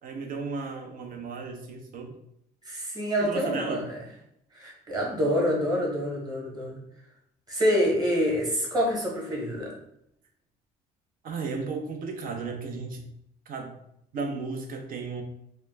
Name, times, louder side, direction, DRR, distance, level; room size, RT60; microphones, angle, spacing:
voice 1, 0.0-2.1 3.2-3.9 11.2-13.0 13.5-13.7 14.1-15.2, right 4 dB, 55° right, 3 dB, 0.7 m, -34 dB
voice 2, 2.6-3.8 4.5-6.8 7.5-9.7, equal, 25° right, -2 dB, 1.2 m, -26 dB
3.0 x 2.2 x 3.3 m, 0.75 s
cardioid pair, 110°, 17 cm